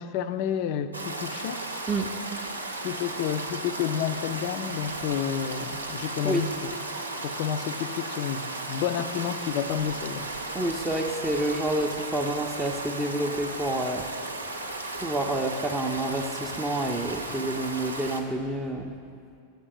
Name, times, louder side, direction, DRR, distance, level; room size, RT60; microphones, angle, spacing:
voice 1, 0.0-1.6 2.8-6.7 7.2-10.3, left 9 dB, 45° left, 12 dB, 0.4 m, -30 dB
Stream, 0.9-18.2, right 2 dB, 80° right, 0.6 m, -35 dB
voice 2, 10.5-14.1 15.0-18.9, right 1 dB, 10° right, 1 dB, 0.5 m, -28 dB
7.9 x 6.9 x 5.0 m, 2.3 s
figure-of-eight pair, 90°, 0 cm